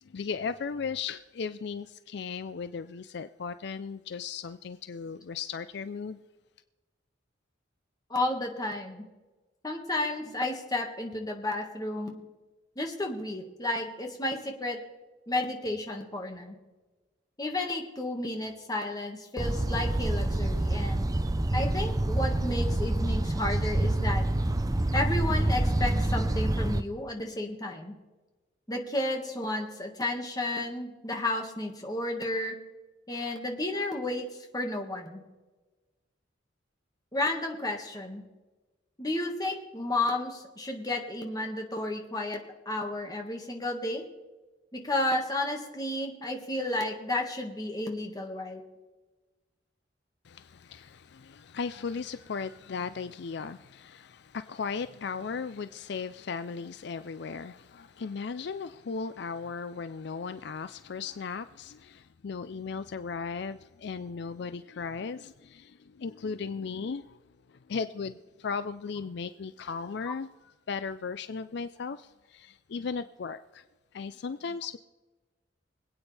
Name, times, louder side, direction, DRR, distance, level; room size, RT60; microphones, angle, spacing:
voice 1, 0.0-6.2 50.2-67.2 67.5-73.6 73.9-74.8, left 5 dB, 60° left, 0.4 m, -36 dB
voice 2, 8.1-9.1 9.6-12.2 12.8-14.8 15.3-16.6 17.4-21.1 21.5-24.2 24.9-27.9 28.7-32.6 33.1-34.3 34.5-35.2 37.1-38.2 39.0-44.0 44.7-48.6, left 2 dB, 20° left, 1.8 m, -32 dB
sound 1, 19.4-26.8, right 1 dB, 20° right, 0.6 m, -27 dB
25.0 x 8.9 x 3.4 m
head